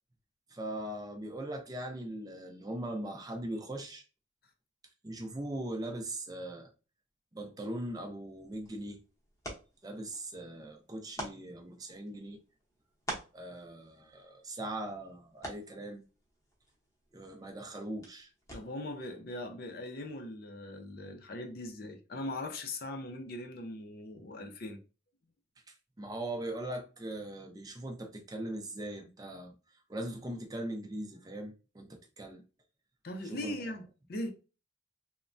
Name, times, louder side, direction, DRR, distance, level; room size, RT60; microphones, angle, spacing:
voice 1, 0.5-4.0 5.0-6.7 7.3-9.0 9.8-12.4 13.3-16.0 17.1-18.3 25.7-29.5 29.9-32.4 33.3-33.5, right 1 dB, 20° right, 0.4 m, -40 dB
sound 1, 8.3-19.0, right 1 dB, 15° left, 0.8 m, -48 dB
voice 2, 18.5-24.8 33.0-34.3, left 1 dB, 50° left, 0.5 m, -40 dB
3.1 x 2.1 x 2.5 m
head